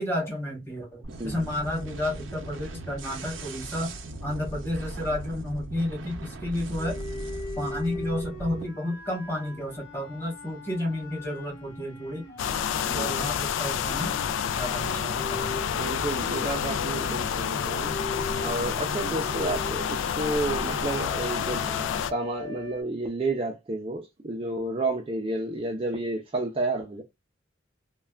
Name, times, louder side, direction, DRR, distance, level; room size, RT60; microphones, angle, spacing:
voice 1, 0.0-3.9 4.2-7.0 7.6-12.3 12.9-14.1 14.5-15.5 15.8-16.1, left 1 dB, 10° left, 1.6 m, -31 dB
sound 1, 1.0-8.7, right 2 dB, 80° right, 0.6 m, -38 dB
voice 2, 1.1-1.4 12.9-13.3 15.7-17.9 18.4-27.0, right 2 dB, 30° right, 0.5 m, -31 dB
sound 2, 6.8-13.3 13.8-22.8, left 2 dB, 50° left, 2.0 m, -40 dB
sound 3, 12.4-22.1, left 8 dB, 80° left, 0.3 m, -29 dB
3.2 x 2.3 x 2.3 m
head